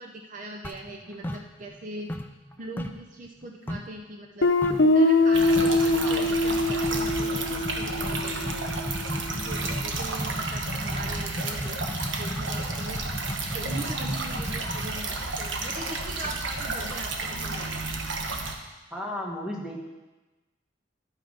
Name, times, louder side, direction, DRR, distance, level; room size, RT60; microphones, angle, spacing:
voice 1, 0.0-2.1 2.6-4.5 4.8-8.7 9.3-11.8 12.2-13.0 13.5-17.7, right 2 dB, 45° right, 1 dB, 0.6 m, -41 dB
sound 1, 0.6-1.8 2.1-4.0 4.6-4.9 5.2-5.3 5.6-5.9 6.7-17.5, equal, 10° left, 0.4 m, -35 dB
Guitar, 4.4-9.1, left 2 dB, 90° left, 0.7 m, -23 dB
sound 2, 5.3-18.6, right 3 dB, 90° right, 1.2 m, -32 dB
voice 2, 6.0-6.3 12.5-12.7 18.9-19.8, left 1 dB, 5° right, -3 dB, 1.7 m, -35 dB
12.5 x 5.9 x 5.1 m, 1.1 s
head